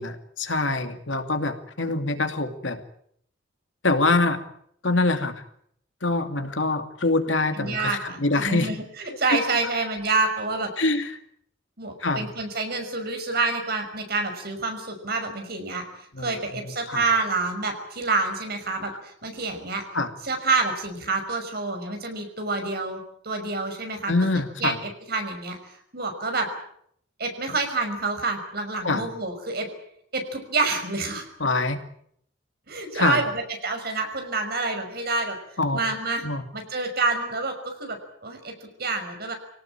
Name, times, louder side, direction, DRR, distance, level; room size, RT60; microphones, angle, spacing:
voice 1, 0.0-2.8 3.8-4.4 4.8-5.4 6.0-8.8 10.8-11.1 12.0-12.3 16.1-17.0 19.9-20.1 24.1-24.7 28.8-29.1 31.4-31.8 32.9-33.2 35.6-35.8 36.2-36.4, left 2 dB, 80° left, 7 dB, 2.6 m, -25 dB
voice 2, 7.5-10.7 11.8-15.8 16.2-19.8 20.2-24.1 24.6-26.5 27.2-29.7 30.1-31.3 32.7-35.4 35.7-36.2 36.5-39.3, right 3 dB, 55° right, 5 dB, 5.8 m, -28 dB
25.0 x 18.0 x 9.0 m, 0.68 s
head